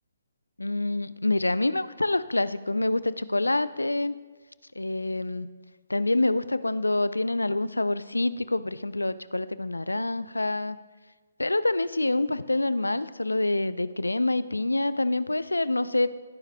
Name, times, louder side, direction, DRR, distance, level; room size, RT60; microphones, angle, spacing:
voice 1, 0.6-4.2 4.8-5.5 5.9-10.8 11.4-16.1, left 2 dB, 85° left, 16 dB, 0.4 m, -26 dB
17.5 x 9.5 x 2.2 m, 1.3 s
figure-of-eight pair, 135°, 0 cm